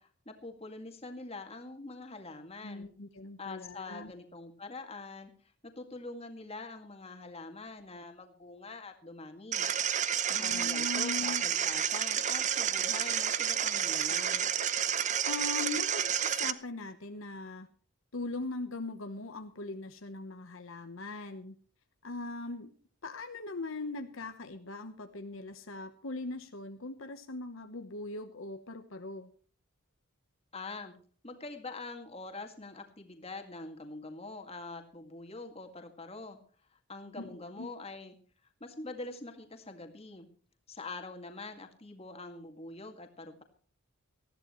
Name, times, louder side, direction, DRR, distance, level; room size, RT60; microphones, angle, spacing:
voice 1, 0.0-2.9 3.4-5.3 5.8-9.7 10.0-14.5 30.5-30.9 31.2-36.4 36.7-38.2 38.6-40.3 40.7-43.4, left 3 dB, 25° left, 4 dB, 2.1 m, -44 dB
voice 2, 2.6-4.1 10.4-11.4 15.2-17.7 18.1-21.6 22.0-22.7 23.0-29.3 37.2-37.7, left 2 dB, 65° left, 7 dB, 1.0 m, -40 dB
sound 1, 9.5-16.5, right 9 dB, 35° right, 0.7 m, -30 dB
19.5 x 14.0 x 3.1 m, 0.44 s
head